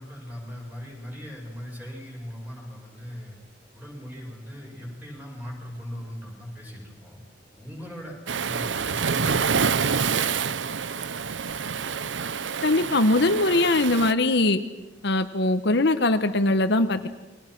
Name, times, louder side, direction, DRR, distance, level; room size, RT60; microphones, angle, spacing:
voice 1, 0.0-3.4 3.7-7.2 7.5-8.2 8.4-10.3, equal, 10° right, -1 dB, 7.2 m, -39 dB
Waves surf, 8.3-14.1, right 6 dB, 80° right, 0.8 m, -27 dB
voice 2, 12.6-14.6 15.0-17.1, left 2 dB, 65° left, 9 dB, 1.2 m, -21 dB
29.0 x 23.0 x 6.1 m, 1.1 s
head